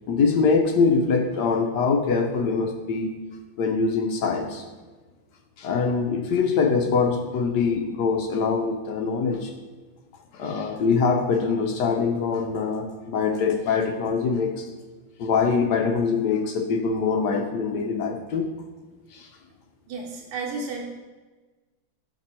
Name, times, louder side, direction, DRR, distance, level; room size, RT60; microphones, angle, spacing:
voice 1, 0.1-3.1 3.6-4.7 5.6-9.5 10.3-14.7 15.2-18.5 19.1-19.3, left 5 dB, 70° left, 4 dB, 1.0 m, -23 dB
voice 2, 19.9-21.0, right 3 dB, 75° right, -1 dB, 1.5 m, -32 dB
6.8 x 6.0 x 4.3 m, 1.3 s
omnidirectional pair, 2.3 m